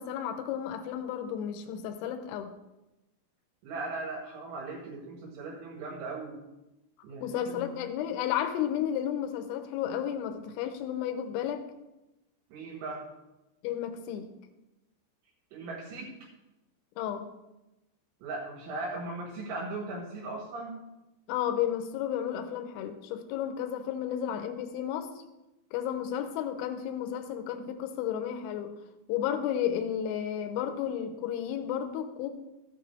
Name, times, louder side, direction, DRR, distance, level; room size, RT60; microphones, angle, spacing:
voice 1, 0.0-2.5 7.2-11.7 13.6-14.3 17.0-17.3 21.3-25.1 25.7-28.7 29.1-32.3, left 9 dB, 80° left, 7 dB, 3.0 m, -32 dB
voice 2, 3.6-6.4 7.0-7.7 12.5-13.1 15.5-16.3 18.2-20.8, right 3 dB, 70° right, -3 dB, 3.7 m, -38 dB
14.0 x 8.9 x 3.3 m, 0.98 s
omnidirectional pair, 5.9 m